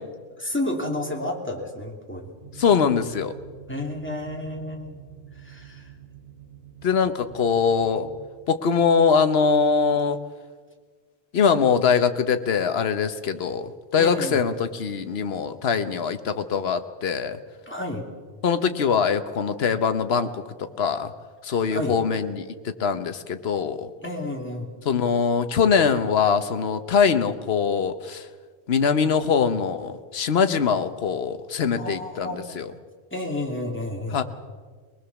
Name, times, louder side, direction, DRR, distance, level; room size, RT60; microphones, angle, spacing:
voice 1, 0.4-2.3 3.7-5.0 5.4-5.9 14.0-14.4 17.7-18.0 21.7-22.0 24.0-24.7 31.8-32.6 33.1-34.2, left 1 dB, 10° left, 0 dB, 3.0 m, -31 dB
sound 1, 2.4-8.3, right 9 dB, 30° right, 6.4 m, -46 dB
voice 2, 2.5-3.3 6.8-8.1 8.5-10.2 11.3-17.4 18.4-21.1 21.4-23.9 24.8-28.3 28.7-32.7 34.1-34.2, left 6 dB, 65° left, 9 dB, 1.3 m, -22 dB
22.5 x 20.0 x 7.1 m, 1.5 s
omnidirectional pair, 1.1 m